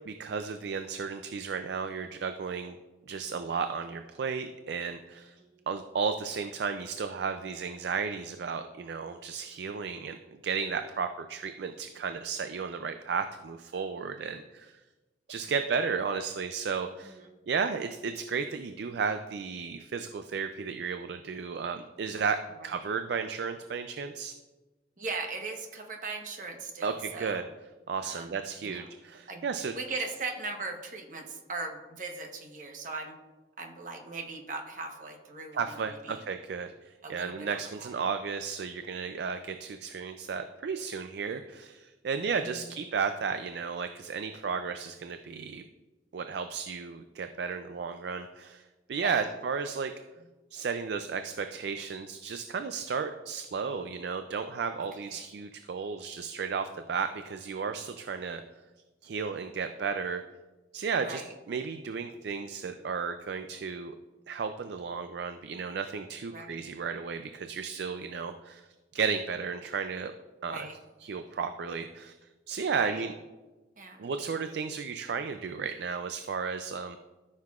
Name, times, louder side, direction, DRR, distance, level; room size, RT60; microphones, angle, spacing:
voice 1, 0.1-2.8 3.1-5.4 5.7-10.2 10.4-14.7 15.3-17.2 17.5-22.4 22.6-24.3 26.8-27.4 27.9-29.7 35.5-45.6 46.1-48.6 48.9-49.9 50.5-58.4 59.0-60.2 60.7-61.2 61.5-63.9 64.3-68.7 68.9-70.1 70.4-70.7 71.0-72.1 72.5-73.1 74.0-77.0, right 5 dB, 65° right, 8 dB, 0.4 m, -33 dB
voice 2, 25.0-27.4 28.0-28.4 28.6-28.9 29.3-29.4 29.7-33.1 33.6-36.2 37.0-37.9 49.0-49.3 55.0-55.2 61.0-61.3 66.3-66.5 70.5-70.7 72.7-73.0 73.8-74.1, right 3 dB, 45° right, 3 dB, 1.0 m, -39 dB
13.0 x 6.6 x 2.4 m, 1.2 s
head